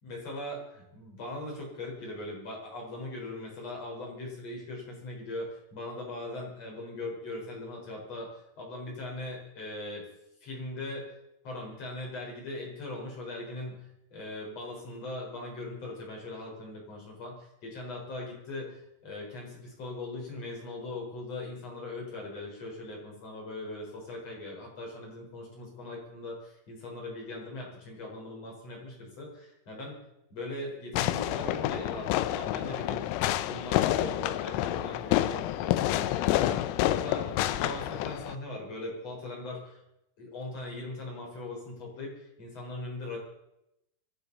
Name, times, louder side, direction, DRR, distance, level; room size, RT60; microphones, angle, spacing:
voice 1, 0.0-8.3 8.6-10.1 10.4-11.1 11.4-30.0 30.3-33.0 33.4-37.3 37.6-39.8 40.2-43.2, left 2 dB, 30° left, -1 dB, 5.2 m, -40 dB
Fireworks, 30.9-38.4, left 14 dB, 85° left, 3.4 m, -28 dB
26.0 x 11.5 x 4.1 m, 0.83 s
omnidirectional pair, 6.0 m